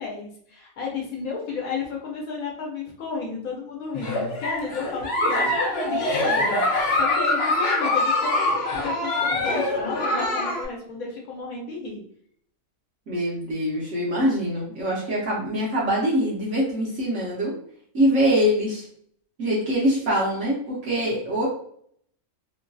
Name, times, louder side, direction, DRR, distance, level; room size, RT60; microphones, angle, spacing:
voice 1, 0.0-6.7 6.9-12.0 20.9-21.1, left 4 dB, 80° left, -1 dB, 1.1 m, -33 dB
Giggle, 3.9-10.6, left 2 dB, 55° left, 0.8 m, -24 dB
voice 2, 13.1-17.5 17.9-18.9 19.4-21.5, equal, 65° right, -6 dB, 1.1 m, -23 dB
3.1 x 2.5 x 2.2 m, 0.64 s
omnidirectional pair, 1.5 m